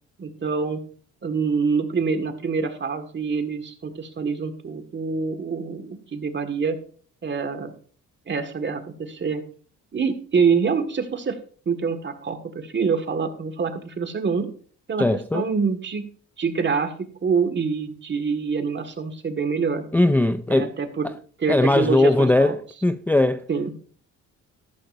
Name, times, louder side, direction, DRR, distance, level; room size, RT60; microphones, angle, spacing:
voice 1, 0.2-0.8 1.2-6.8 7.2-7.7 8.3-9.4 9.9-11.4 11.6-14.5 14.9-15.0 15.3-16.1 16.4-19.8 20.5-21.1 21.4-22.5 23.5-23.7, right 5 dB, 40° right, 1.7 m, -25 dB
voice 2, 15.0-15.5 19.9-20.7 21.0-21.1 21.5-23.5, left 2 dB, 5° left, 0.4 m, -20 dB
13.0 x 11.5 x 2.6 m
cardioid pair, 90°, 30 cm